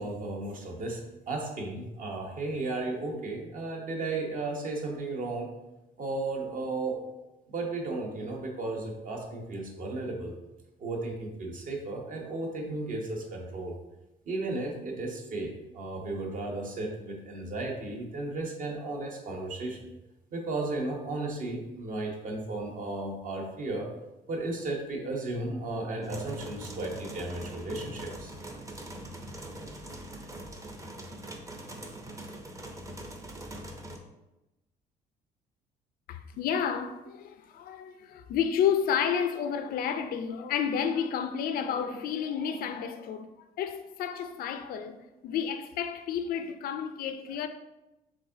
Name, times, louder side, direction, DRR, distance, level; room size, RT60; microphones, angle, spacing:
voice 1, 0.0-5.5 6.0-7.0 7.5-10.3 10.8-13.8 14.3-19.8 20.3-23.9 24.3-28.3, right 2 dB, 50° right, 0.9 m, -34 dB
sound 1, 26.0-34.0, right 1 dB, 20° right, 0.6 m, -42 dB
voice 2, 36.1-47.5, left 8 dB, 60° left, 0.4 m, -31 dB
4.9 x 3.6 x 2.6 m
cardioid pair, 110°, 17 cm